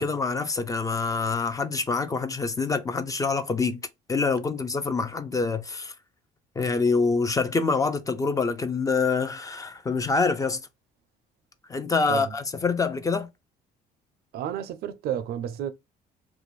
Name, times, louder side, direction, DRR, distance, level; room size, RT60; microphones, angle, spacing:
voice 1, 0.0-3.8 4.1-5.9 6.6-10.6 11.7-13.3, left 4 dB, 20° left, 0.4 m, -26 dB
voice 2, 14.3-15.7, right 9 dB, 70° right, 0.4 m, -31 dB
2.4 x 2.2 x 3.0 m
cardioid pair, 110°, 17 cm